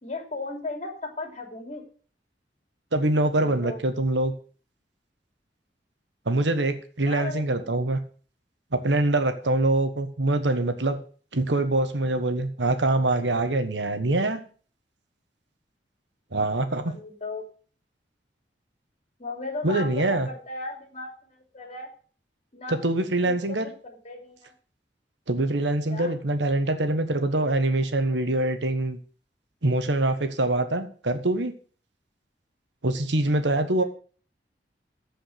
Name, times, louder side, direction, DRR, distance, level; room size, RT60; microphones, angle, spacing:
voice 1, 0.0-1.8 3.3-3.8 7.0-7.9 16.7-17.4 19.2-21.9 22.5-22.8 23.2-24.5 25.9-26.1 33.6-33.8, left 3 dB, 40° left, 3 dB, 2.9 m, -36 dB
voice 2, 2.9-4.3 6.2-8.0 8.7-11.0 11.3-14.4 16.3-16.9 19.6-20.3 22.7-23.7 25.3-29.0 29.6-31.5 32.8-33.8, right 2 dB, 90° right, 9 dB, 1.4 m, -24 dB
14.5 x 5.1 x 6.6 m, 0.42 s
head